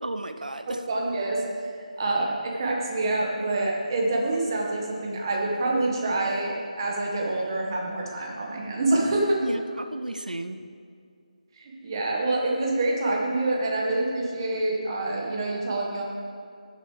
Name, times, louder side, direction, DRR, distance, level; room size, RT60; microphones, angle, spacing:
voice 1, 0.0-0.8 9.4-10.6, right 2 dB, 85° right, 8 dB, 0.6 m, -33 dB
voice 2, 0.9-1.4 2.0-9.4 11.6-16.0, right 2 dB, 30° right, -2 dB, 1.6 m, -26 dB
15.0 x 7.1 x 3.4 m, 2.3 s
figure-of-eight pair, 160°, 4 cm